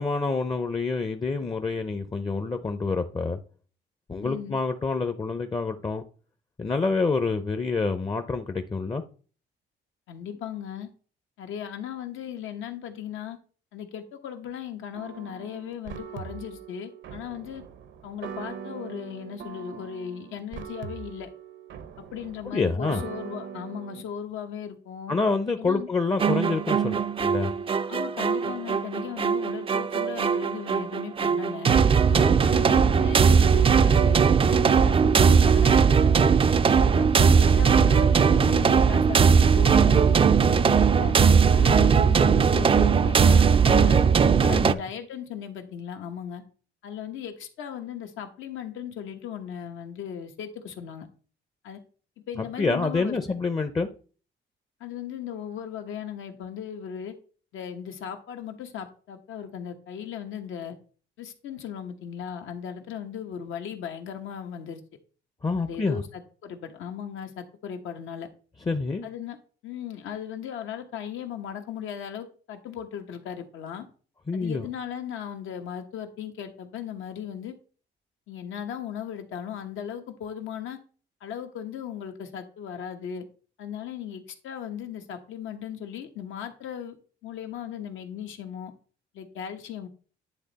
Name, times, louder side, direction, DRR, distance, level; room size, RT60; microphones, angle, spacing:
voice 1, 0.0-3.4 4.1-6.0 6.6-9.0 22.5-23.0 25.1-27.5 32.1-32.4 41.6-41.9 44.4-44.8 52.4-53.9 65.4-66.0 68.7-69.1 74.3-74.7, left 4 dB, 20° left, 0.5 m, -27 dB
voice 2, 4.2-4.6 10.1-10.9 11.4-13.4 13.7-17.6 18.0-21.3 22.0-25.1 25.6-25.9 27.9-31.8 32.4-36.4 36.7-41.1 41.5-44.0 44.5-46.4 46.8-51.1 51.6-51.8 52.3-53.2 54.8-57.1 57.5-60.8 61.2-64.8 65.6-68.3 69.0-69.4 69.6-73.9 74.3-77.5 78.3-80.8 81.2-83.3 83.6-87.0 87.2-88.7 89.1-89.9, left 9 dB, 80° left, 1.1 m, -37 dB
sound 1, 14.9-24.0, right 7 dB, 70° right, 0.7 m, -41 dB
sound 2, 26.2-44.7, right 6 dB, 30° right, 0.4 m, -19 dB
9.9 x 3.3 x 4.0 m
cardioid pair, 90°, 20 cm